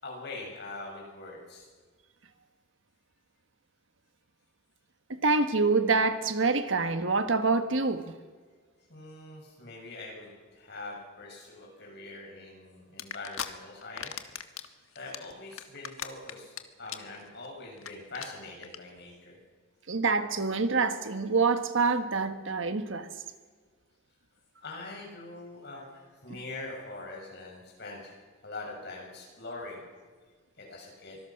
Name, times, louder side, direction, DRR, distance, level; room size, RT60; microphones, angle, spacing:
voice 1, 0.0-1.7 8.9-14.1 15.0-19.4 24.6-29.8 30.6-31.2, left 2 dB, 55° left, 7.1 m, -43 dB
voice 2, 5.1-8.0 19.9-23.1, right 4 dB, 70° right, 1.4 m, -26 dB
sound 1, 13.0-13.5 13.8-14.7 15.0-16.6 16.9-17.2 17.4-17.5 17.8-17.9 18.1-18.3 18.6-18.8, left 9 dB, 90° left, 1.3 m, -37 dB
25.0 x 20.0 x 6.0 m
head